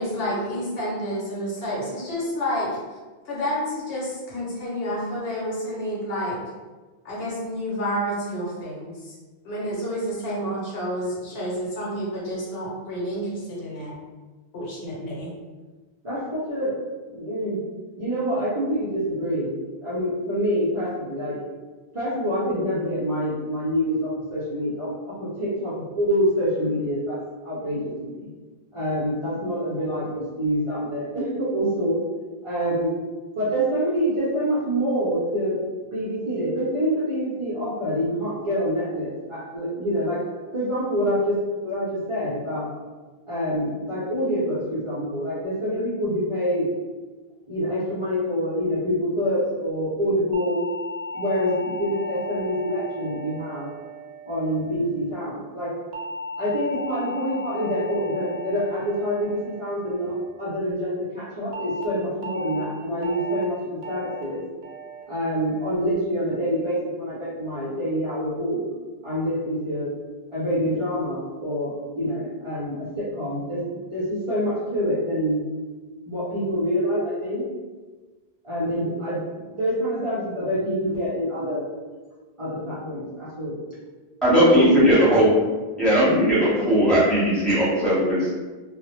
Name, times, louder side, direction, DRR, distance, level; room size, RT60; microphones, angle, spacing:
voice 1, 0.0-2.7 3.3-6.4 7.0-9.1 9.4-13.9 14.5-15.3, equal, 70° left, -5 dB, 0.9 m, -29 dB
voice 2, 16.0-16.8 17.1-17.6 18.0-19.6 19.8-21.3 21.9-28.3 28.7-32.0 32.4-33.0 33.3-35.6 35.9-40.2 40.5-41.4 41.6-42.7 43.3-46.7 47.5-50.6 51.1-53.7 54.3-55.7 56.4-64.4 65.1-68.6 69.0-69.9 70.3-73.6 73.9-75.5 76.1-77.4 78.4-81.7 82.4-83.6 84.3-84.7, equal, 40° right, -10 dB, 0.5 m, -26 dB
sound 1, 50.3-54.8 55.9-60.4 61.5-61.8 62.2-62.6 63.0-63.4 63.8-64.2 64.6-65.0 65.4-65.8, equal, 80° right, 0.8 m, -36 dB
voice 3, 84.2-85.3 85.8-88.3, equal, ahead, -10 dB, 0.9 m, -18 dB
2.0 x 2.0 x 2.9 m, 1.3 s
omnidirectional pair, 1.0 m